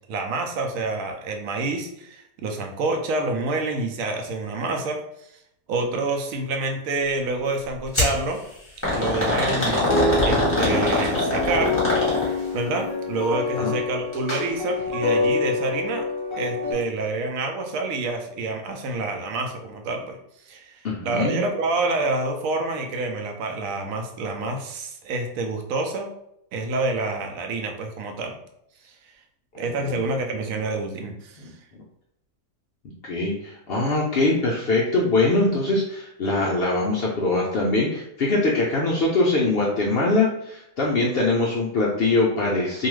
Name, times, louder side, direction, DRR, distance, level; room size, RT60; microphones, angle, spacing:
voice 1, 0.1-5.0 5.7-8.4 8.9-10.0 10.2-11.8 12.5-16.0 16.4-20.2 20.4-26.1 26.5-28.4 28.8-28.9 29.6-31.5, right 3 dB, 70° right, 3 dB, 0.9 m, -27 dB
sound 1, 7.9-8.2 8.8-12.5 14.1-14.4 14.8-14.9 15.7-15.8, left 2 dB, 10° left, 0.9 m, -23 dB
sound 2, 9.9-16.7, left 2 dB, 40° left, 0.8 m, -26 dB
voice 2, 20.8-21.4 29.5-30.0 31.4-31.5 33.0-42.9, left 2 dB, 80° left, -3 dB, 0.5 m, -22 dB
2.7 x 2.3 x 3.1 m, 0.77 s
omnidirectional pair, 1.6 m